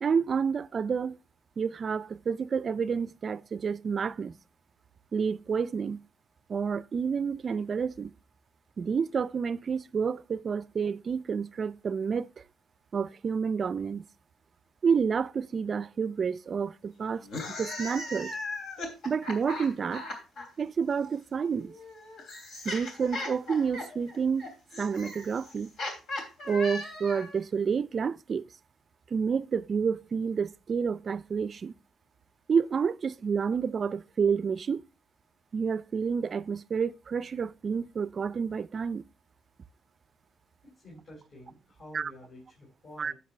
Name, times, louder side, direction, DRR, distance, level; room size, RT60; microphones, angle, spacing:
voice 1, 0.0-1.2 1.6-4.3 5.1-6.0 6.5-8.1 8.8-12.3 12.9-14.1 14.8-18.3 19.0-20.0 20.6-21.7 22.6-25.7 26.5-28.5 29.1-31.7 32.5-34.8 35.5-39.0 41.9-42.1 43.0-43.1, right 6 dB, 45° right, 0.4 m, -29 dB
sound 1, 17.2-20.5 21.5-27.4, left 2 dB, 75° left, 3.1 m, -38 dB
voice 2, 40.6-43.1, left 1 dB, 50° left, 4.4 m, -49 dB
10.0 x 7.5 x 3.2 m
cardioid pair, 90°, 0 cm